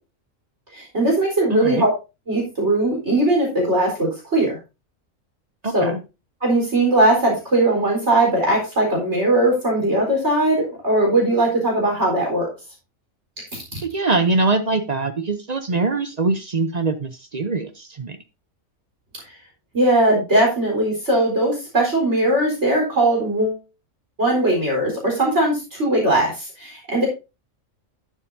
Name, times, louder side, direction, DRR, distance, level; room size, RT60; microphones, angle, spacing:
voice 1, 0.7-1.9 2.3-4.6 5.7-6.0 6.4-12.5 13.7-13.8 19.7-23.6 24.2-27.1, right 1 dB, 60° right, -1 dB, 4.6 m, -19 dB
voice 2, 1.5-1.8 5.6-6.0 13.8-18.2, right 3 dB, 40° right, 9 dB, 0.7 m, -23 dB
11.0 x 9.7 x 2.7 m, 0.27 s
omnidirectional pair, 1.3 m